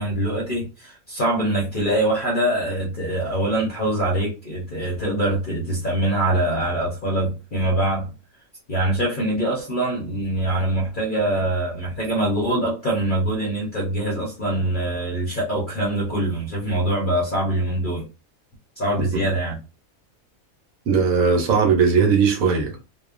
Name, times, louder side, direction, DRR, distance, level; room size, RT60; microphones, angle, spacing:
voice 1, 0.0-8.1 8.7-18.1 18.8-19.6, right 1 dB, 45° left, 0.8 m, -24 dB
voice 2, 20.9-22.8, right 5 dB, 80° right, 1.3 m, -18 dB
2.8 x 2.1 x 2.4 m
omnidirectional pair, 1.4 m